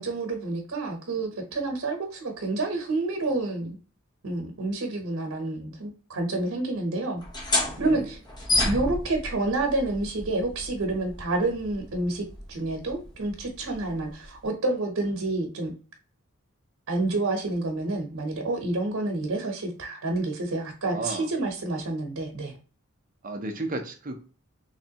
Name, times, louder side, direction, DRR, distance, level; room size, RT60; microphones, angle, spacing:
voice 1, 0.0-3.8 4.2-7.2 7.8-8.2 8.6-15.7 16.9-22.5, right 2 dB, 85° right, 2 dB, 0.9 m, -29 dB
sound 1, 7.2-14.5, left 2 dB, 20° left, 0.9 m, -32 dB
voice 2, 7.8-8.1 20.9-21.3 23.2-24.2, right 2 dB, 40° right, 4 dB, 0.6 m, -33 dB
3.4 x 3.2 x 2.8 m, 0.38 s
head